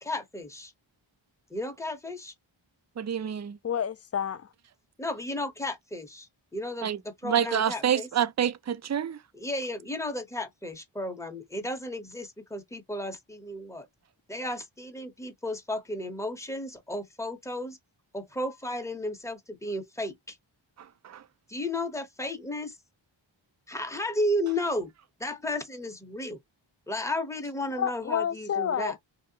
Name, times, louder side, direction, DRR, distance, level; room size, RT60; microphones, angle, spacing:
voice 1, 0.0-0.7 1.5-2.3 5.0-6.3 6.5-8.1 9.3-13.8 14.3-17.8 18.1-20.4 21.5-22.7 23.7-24.9 25.2-26.4 26.9-28.9, left 1 dB, 5° left, 0.7 m, -33 dB
voice 2, 3.0-3.6 6.8-9.2 21.0-21.2, right 9 dB, 35° right, 0.4 m, -28 dB
voice 3, 3.6-4.5 27.7-29.0, left 8 dB, 35° left, 0.4 m, -29 dB
3.0 x 2.7 x 2.7 m
wide cardioid pair, 75°, 48 cm